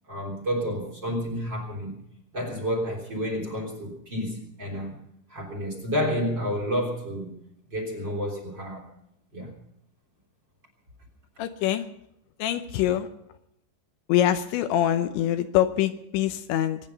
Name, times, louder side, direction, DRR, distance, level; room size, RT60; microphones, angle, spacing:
voice 1, 0.1-1.9 2.3-4.9 5.3-7.3 7.7-8.9 9.3-9.5, equal, 25° right, 1 dB, 3.4 m, -30 dB
voice 2, 11.4-11.9 12.4-13.1 14.1-16.8, left 12 dB, 80° left, 9 dB, 3.0 m, -24 dB
24.5 x 9.7 x 5.5 m, 0.75 s
omnidirectional pair, 5.4 m